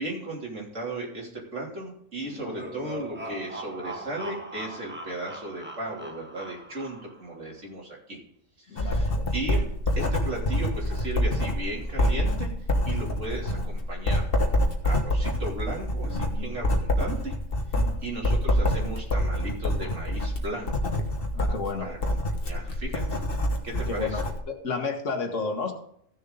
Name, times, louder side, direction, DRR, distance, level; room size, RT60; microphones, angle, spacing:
voice 1, 0.0-8.2 8.6-9.6 10.0-12.5 12.9-17.3 17.7-20.9 21.8-22.0 22.4-23.2 23.6-24.2, right 2 dB, 65° right, -3 dB, 3.5 m, -36 dB
sound 1, 2.2-7.3, right 1 dB, 10° right, 1.2 m, -40 dB
voice 2, 8.7-9.3 17.7-18.0 21.3-21.9 23.9-25.7, left 4 dB, 70° left, 4 dB, 1.9 m, -32 dB
Writing, 8.8-24.4, left 1 dB, 45° left, 1.6 m, -26 dB
15.5 x 6.8 x 3.9 m, 0.69 s
omnidirectional pair, 1.3 m